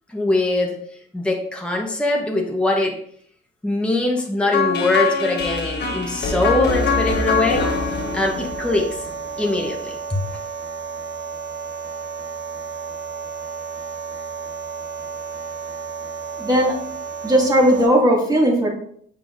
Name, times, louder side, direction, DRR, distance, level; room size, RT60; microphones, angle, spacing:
voice 1, 0.1-0.8 1.1-3.0 3.6-7.6 8.1-9.0 9.4-10.2, left 2 dB, 5° left, -1 dB, 1.2 m, -22 dB
sound 1, 4.5-9.5, left 5 dB, 60° left, 1.5 m, -23 dB
sound 2, 6.7-17.9, right 5 dB, 65° right, 1.5 m, -32 dB
voice 2, 16.4-16.7 17.2-18.7, equal, 20° right, -3 dB, 2.4 m, -17 dB
6.9 x 5.5 x 2.7 m, 0.63 s
cardioid pair, 90°, 20 cm